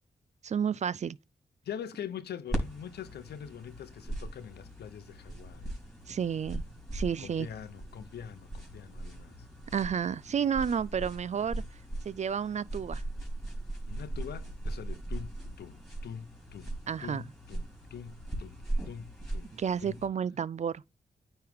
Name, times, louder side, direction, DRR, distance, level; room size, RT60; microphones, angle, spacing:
voice 1, 0.4-1.2 6.1-6.6 6.9-7.5 9.7-11.6 12.1-13.0 16.9-17.2 19.5-20.8, right 7 dB, 45° right, 0.4 m, -31 dB
voice 2, 1.6-5.7 7.2-9.4 13.9-18.6 18.9-19.5 19.8-20.0, left 8 dB, 75° left, 0.7 m, -44 dB
sound 1, 2.5-20.1, right 1 dB, ahead, 3.6 m, -39 dB
9.2 x 3.2 x 3.5 m
supercardioid pair, 40°, 17 cm